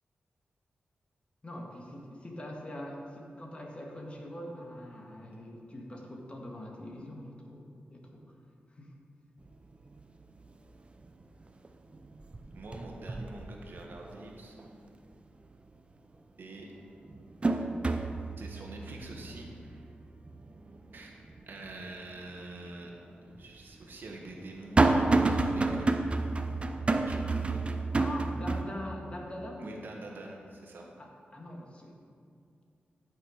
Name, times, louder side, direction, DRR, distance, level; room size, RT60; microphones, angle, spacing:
voice 1, 1.4-8.2 8.7-8.9 28.0-29.7 31.0-31.9, left 1 dB, 30° left, 0 dB, 1.7 m, -43 dB
sound 1, 9.4-9.5 10.0-10.5 10.9-11.7 11.9-14.2 14.6-14.7 16.1-16.2 16.7-21.9 22.3-22.4 23.3-28.6, right 3 dB, 30° right, 0.6 m, -30 dB
voice 2, 12.5-15.0 16.4-16.7 18.4-19.5 20.9-21.1 21.5-22.9 23.2-26.1 27.1-27.6 29.6-30.9, right 2 dB, 70° right, 0 dB, 1.5 m, -45 dB
12.0 x 6.6 x 5.0 m, 2.4 s
wide cardioid pair, 95°, 4 cm